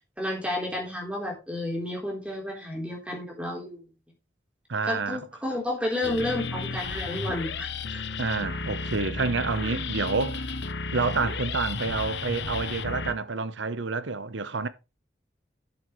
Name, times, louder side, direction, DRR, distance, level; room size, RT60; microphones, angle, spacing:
voice 1, 0.2-3.8 4.8-8.0, left 1 dB, 5° right, 3.7 m, -31 dB
voice 2, 4.7-5.2 8.2-10.6 10.9-14.7, right 4 dB, 85° right, 0.9 m, -28 dB
sound 1, 6.0-13.1, left 4 dB, 70° left, 0.9 m, -33 dB
11.5 x 8.0 x 3.2 m
head